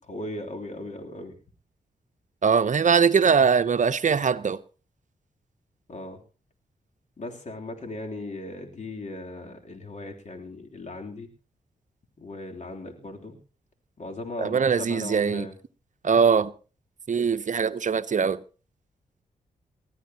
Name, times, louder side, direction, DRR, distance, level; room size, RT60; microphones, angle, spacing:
voice 1, 0.0-1.4 5.9-6.2 7.2-11.3 12.2-13.4 14.0-15.5, left 2 dB, 50° left, 3.3 m, -38 dB
voice 2, 2.4-4.6 14.4-15.5 16.0-16.5 17.1-18.4, right 6 dB, 50° right, 0.8 m, -21 dB
20.0 x 14.0 x 2.9 m
cardioid pair, 55°, 16 cm